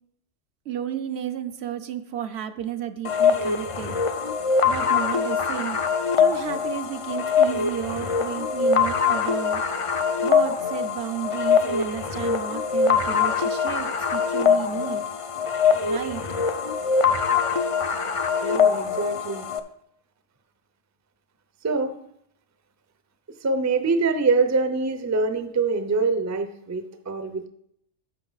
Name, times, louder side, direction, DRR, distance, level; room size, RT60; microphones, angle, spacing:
voice 1, 0.7-4.3 4.7-5.8 6.2-9.6 10.2-15.0 15.9-16.2, right 10 dB, 70° right, 9 dB, 0.8 m, -32 dB
sound 1, 3.0-19.6, left 6 dB, 50° left, 0.4 m, -23 dB
voice 2, 18.4-19.4 21.6-22.0 23.4-27.5, right 4 dB, 20° right, 8 dB, 0.5 m, -24 dB
10.5 x 6.6 x 4.0 m, 0.70 s
omnidirectional pair, 1.2 m